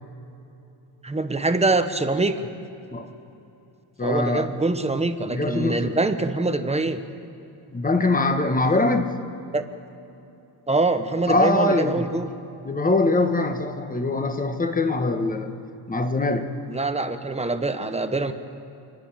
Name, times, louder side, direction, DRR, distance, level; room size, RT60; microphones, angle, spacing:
voice 1, 1.0-2.5 4.0-7.0 9.5-9.6 10.7-12.3 16.7-18.3, right 2 dB, 15° right, 8 dB, 0.9 m, -24 dB
voice 2, 4.0-4.5 5.3-6.0 7.7-9.2 11.3-12.0 12.6-15.5 15.9-16.5, left 2 dB, 20° left, 7 dB, 1.3 m, -23 dB
29.0 x 10.5 x 8.9 m, 2.9 s
cardioid pair, 145°, 46 cm